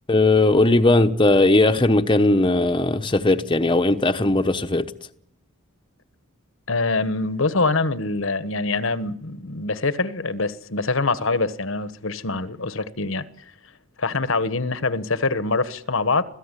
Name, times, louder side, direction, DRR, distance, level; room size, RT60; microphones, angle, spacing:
voice 1, 0.1-4.9, left 2 dB, 20° left, 1.1 m, -18 dB
voice 2, 6.7-13.3 14.0-16.2, left 3 dB, 65° left, 1.3 m, -24 dB
27.0 x 17.0 x 9.9 m
head